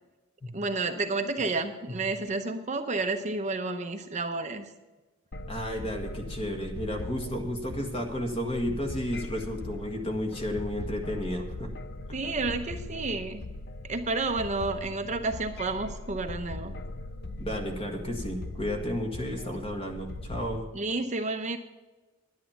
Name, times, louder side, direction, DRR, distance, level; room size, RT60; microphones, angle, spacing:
voice 1, 0.5-4.7 12.1-13.4 13.9-16.7 20.7-21.6, right 3 dB, 35° right, 6 dB, 0.7 m, -30 dB
sound 1, 5.3-20.6, left 2 dB, 55° left, 0.8 m, -40 dB
voice 2, 5.5-11.8 12.1-12.2 17.4-20.6, equal, 30° left, 3 dB, 1.7 m, -32 dB
10.5 x 10.0 x 5.8 m, 1.2 s
head